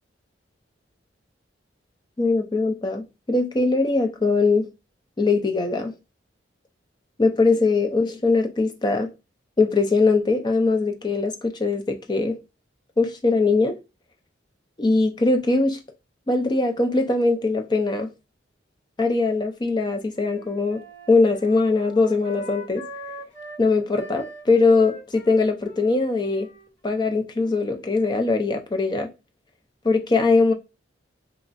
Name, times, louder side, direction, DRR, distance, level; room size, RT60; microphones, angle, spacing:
voice 1, 2.2-4.7 5.2-5.9 7.2-9.1 9.6-12.4 13.0-13.8 14.8-15.8 16.3-18.1 19.0-22.9 23.6-26.5 26.8-29.1 29.8-30.5, left 3 dB, 25° left, 0.4 m, -21 dB
Wind instrument woodwind instrument, 19.6-23.6 23.9-28.4, right 1 dB, 70° left, 1.5 m, -43 dB
3.0 x 2.4 x 2.5 m
head